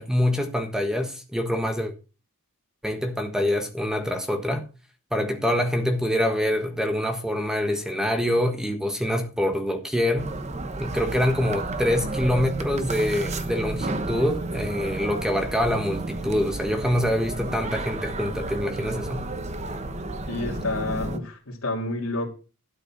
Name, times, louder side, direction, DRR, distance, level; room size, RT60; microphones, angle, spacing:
voice 1, 0.0-1.9 2.8-4.6 5.1-10.3 10.8-19.2, left 1 dB, 5° right, 1.3 m, -25 dB
sound 1, 10.2-21.2, right 2 dB, 30° right, 1.1 m, -31 dB
voice 2, 20.3-22.3, left 2 dB, 75° left, 3.2 m, -29 dB
12.5 x 6.7 x 6.0 m
head